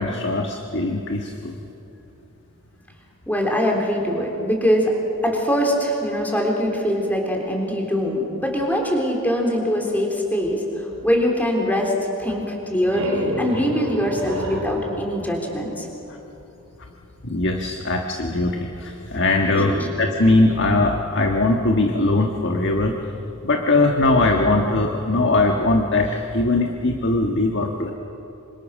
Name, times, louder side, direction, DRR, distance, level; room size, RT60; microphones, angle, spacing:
voice 1, 0.0-1.6 16.1-16.2 17.2-23.0 23.4-27.9, left 2 dB, 55° left, 2 dB, 1.5 m, -20 dB
voice 2, 3.3-5.0 5.2-10.6 11.0-11.9 12.2-15.9 19.5-19.9, equal, 5° left, 0 dB, 3.6 m, -22 dB
sound 1, 12.5-16.2, equal, 70° right, 3.7 m, -32 dB
26.5 x 25.5 x 6.5 m, 2.9 s
head